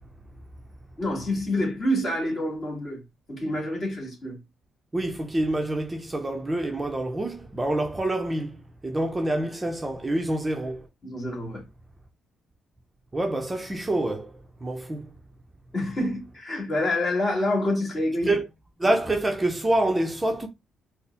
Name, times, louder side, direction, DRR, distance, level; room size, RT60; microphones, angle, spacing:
voice 1, 1.0-3.0 3.3-4.4 11.0-11.6 15.7-18.4, left 1 dB, 45° left, 2.2 m, -27 dB
voice 2, 4.9-10.9 13.1-15.1 18.3-18.5 18.8-20.5, right 1 dB, 15° right, 0.7 m, -27 dB
4.2 x 2.1 x 3.3 m
cardioid pair, 90°, 0 cm